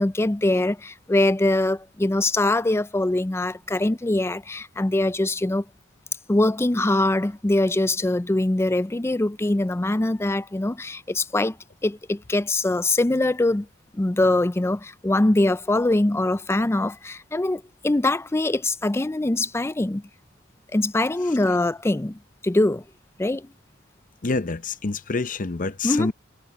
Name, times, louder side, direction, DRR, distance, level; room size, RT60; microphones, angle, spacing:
voice 1, 0.0-5.6 6.3-11.6 11.8-13.7 13.9-20.0 20.7-22.8 23.2-23.5 25.8-26.1, left 2 dB, 15° left, 0.4 m, -23 dB
voice 2, 24.2-26.1, left 3 dB, 40° left, 0.8 m, -27 dB
head